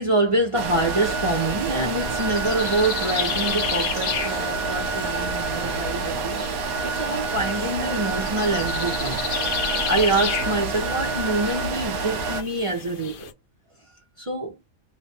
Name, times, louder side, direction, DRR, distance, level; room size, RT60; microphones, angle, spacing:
voice 1, 0.0-6.5 6.8-9.3 9.9-13.3 14.2-14.6, right 2 dB, 35° right, 0.5 m, -26 dB
sound 1, 0.5-12.4, right 3 dB, 75° right, 1.1 m, -28 dB
sound 2, 1.0-13.3, left 7 dB, 85° left, 0.4 m, -33 dB
3.2 x 2.2 x 2.7 m
omnidirectional pair, 1.6 m